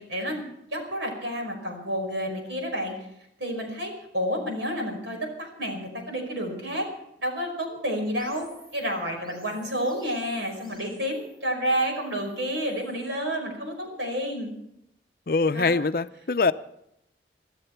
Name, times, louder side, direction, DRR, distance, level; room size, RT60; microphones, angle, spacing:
voice 1, 0.1-2.9 3.4-6.9 7.2-8.5 8.7-14.5 15.5-15.7, equal, 85° right, 5.3 m, -30 dB
sound 1, 8.2-13.3, equal, ahead, 7.3 m, -53 dB
voice 2, 15.3-16.5, left 4 dB, 50° left, 0.6 m, -23 dB
24.0 x 13.0 x 4.6 m
head